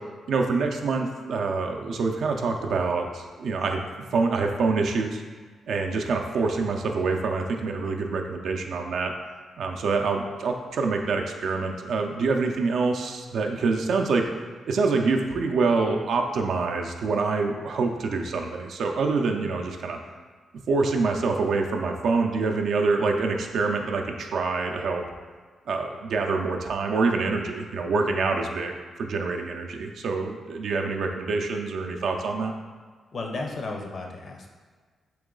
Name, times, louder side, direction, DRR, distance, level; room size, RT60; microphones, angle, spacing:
voice 1, 0.3-3.8 4.1-5.2 5.7-9.1 9.6-14.2 14.7-20.0 20.7-25.0 25.7-32.5, right 4 dB, 75° right, 3 dB, 0.4 m, -26 dB
voice 2, 33.1-34.5, left 3 dB, 55° left, 2 dB, 0.5 m, -33 dB
3.0 x 3.0 x 3.7 m, 1.5 s
cardioid pair, 80°, 0 cm